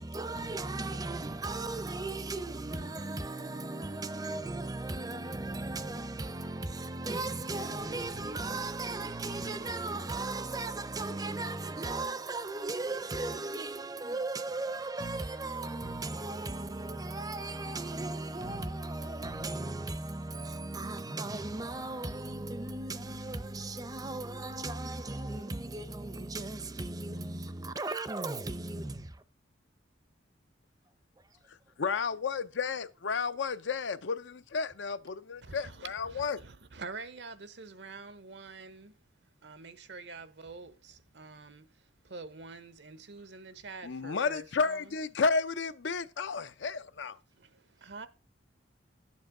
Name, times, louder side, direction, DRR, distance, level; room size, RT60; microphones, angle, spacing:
voice 1, 0.0-29.2, right 2 dB, 20° right, 0.6 m, -36 dB
voice 2, 31.8-36.4 43.8-47.2, left 4 dB, 75° left, 0.6 m, -32 dB
voice 3, 35.4-38.9 39.4-44.9 47.4-48.1, right 4 dB, 65° right, 0.9 m, -46 dB
11.5 x 7.4 x 3.8 m
head